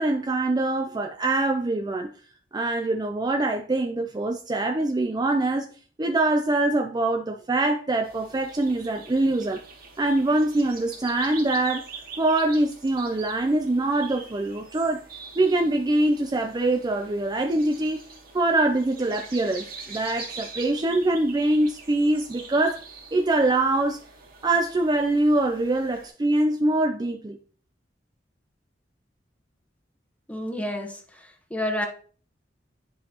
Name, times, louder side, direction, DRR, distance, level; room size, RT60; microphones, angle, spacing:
voice 1, 0.0-2.1 2.5-5.7 6.0-9.6 10.0-11.9 12.2-15.0 15.4-18.0 18.3-22.8 23.1-24.0 24.4-27.4, right 2 dB, 25° right, 0.4 m, -24 dB
sound 1, 8.0-26.1, right 4 dB, 55° right, 2.2 m, -44 dB
voice 2, 30.3-31.9, left 1 dB, 10° left, 1.2 m, -30 dB
10.0 x 5.2 x 2.9 m
head